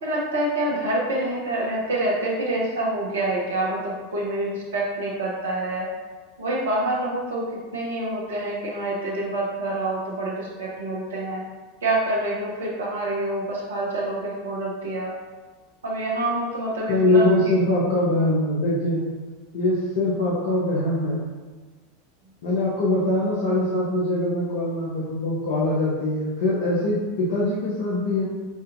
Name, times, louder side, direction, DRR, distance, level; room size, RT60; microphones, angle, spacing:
voice 1, 0.0-5.9 6.4-7.5 7.7-11.4 11.8-15.1 15.8-17.5, right 1 dB, 65° right, -3 dB, 1.0 m, -27 dB
voice 2, 16.9-19.0 19.5-21.3 22.4-28.2, left 1 dB, 60° left, -7 dB, 0.8 m, -22 dB
6.0 x 2.6 x 2.7 m, 1.3 s
figure-of-eight pair, 85°, 0 cm